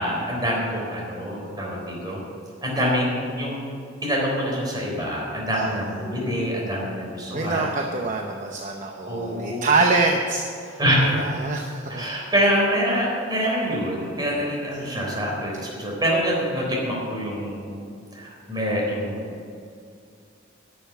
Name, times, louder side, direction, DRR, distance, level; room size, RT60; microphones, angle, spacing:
voice 1, 0.0-2.2 2.6-7.7 9.1-9.7 10.8-11.1 11.9-17.8 18.1-19.5, equal, 20° right, -3 dB, 3.8 m, -25 dB
voice 2, 7.3-10.8 11.1-12.0 14.7-15.2, right 3 dB, 40° right, 1 dB, 0.8 m, -25 dB
12.0 x 7.0 x 9.1 m, 2.3 s
head